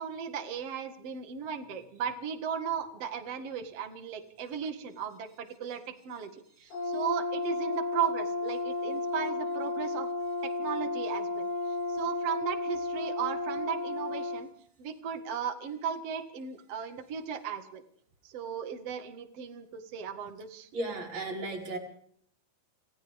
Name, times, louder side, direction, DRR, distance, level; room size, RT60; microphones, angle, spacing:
voice 1, 0.0-10.1 10.6-11.5 11.9-14.5 14.8-17.8 18.2-20.7, right 8 dB, 75° right, 6 dB, 1.4 m, -36 dB
Brass instrument, 6.7-14.4, left 2 dB, 55° left, 7.3 m, -33 dB
voice 2, 20.7-21.8, right 2 dB, 35° right, 0 dB, 6.1 m, -35 dB
29.5 x 27.0 x 3.6 m, 0.63 s
omnidirectional pair, 5.8 m